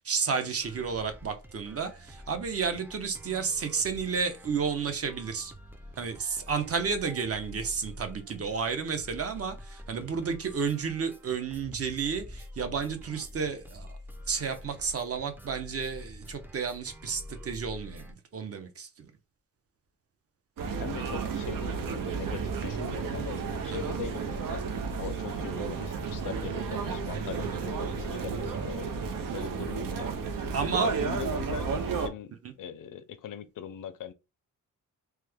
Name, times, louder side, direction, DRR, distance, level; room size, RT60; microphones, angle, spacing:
voice 1, 0.0-5.5 6.0-14.0 14.3-19.1 23.8-23.9 30.5-30.9, right 5 dB, 45° right, 0.8 m, -32 dB
sound 1, 0.6-18.1, left 1 dB, 5° right, 0.4 m, -47 dB
sound 2, 20.6-32.1, right 5 dB, 85° right, 0.7 m, -32 dB
voice 2, 20.8-29.0 29.3-30.6 30.8-34.1, left 9 dB, 75° left, 0.5 m, -41 dB
3.1 x 2.2 x 3.4 m
cardioid pair, 100°, 33 cm